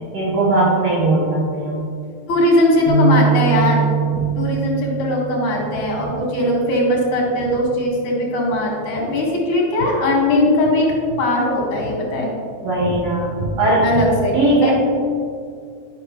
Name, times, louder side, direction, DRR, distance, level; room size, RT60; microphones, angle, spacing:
voice 1, 0.1-1.8 4.1-4.2 12.6-13.9 14.3-14.7, right 2 dB, 65° right, -5 dB, 2.1 m, -18 dB
voice 2, 2.3-3.9 4.4-12.3 13.8-14.7, left 1 dB, 85° left, -2 dB, 3.1 m, -19 dB
sound 1, 2.9-7.1 7.6-7.8 8.7-9.1, right 5 dB, 60° left, 1.6 m, -23 dB
12.0 x 5.4 x 2.9 m, 2.3 s
omnidirectional pair, 3.3 m